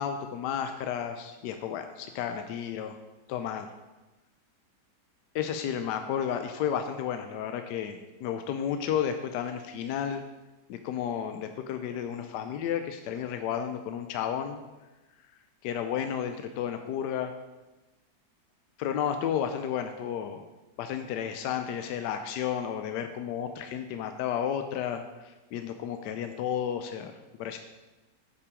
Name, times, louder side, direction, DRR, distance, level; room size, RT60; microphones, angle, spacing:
voice 1, 0.0-3.0 3.3-3.7 5.3-10.2 10.7-14.6 15.6-17.3 18.8-20.4 20.8-27.1 27.4-27.6, left 8 dB, 80° left, 7 dB, 1.2 m, -32 dB
8.3 x 5.8 x 4.9 m, 1.1 s
omnidirectional pair, 1.8 m